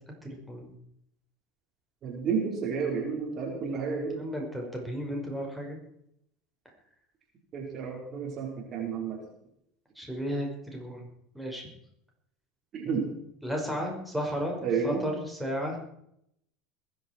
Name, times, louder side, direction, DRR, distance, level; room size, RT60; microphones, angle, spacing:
voice 1, 0.2-0.7 4.1-5.8 10.0-11.1 11.3-11.7 13.4-15.8, equal, ahead, 0 dB, 5.6 m, -34 dB
voice 2, 2.0-4.2 7.5-9.2 12.7-13.1 14.6-15.1, right 5 dB, 45° right, 0 dB, 4.8 m, -31 dB
21.5 x 11.0 x 4.7 m, 0.74 s
hypercardioid pair, 75°, 0 cm